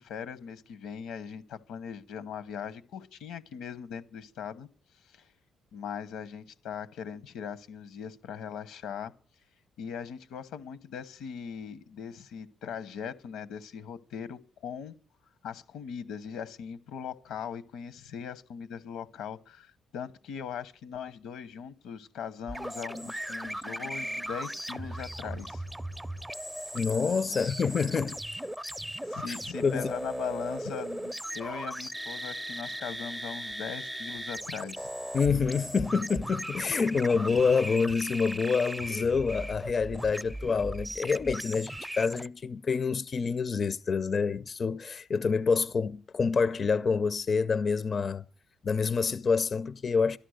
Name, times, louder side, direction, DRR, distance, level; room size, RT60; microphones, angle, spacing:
voice 1, 0.0-4.7 5.1-5.3 5.7-9.1 9.8-14.9 15.4-25.6 27.3-27.5 29.1-34.9, left 7 dB, 85° left, 1.1 m, -40 dB
sound 1, 22.5-42.3, right 1 dB, 5° right, 0.6 m, -38 dB
voice 2, 26.7-28.2 29.3-29.9 35.1-48.2 48.6-50.2, left 5 dB, 40° left, 0.6 m, -27 dB
12.5 x 12.0 x 6.5 m
cardioid pair, 90°, 0 cm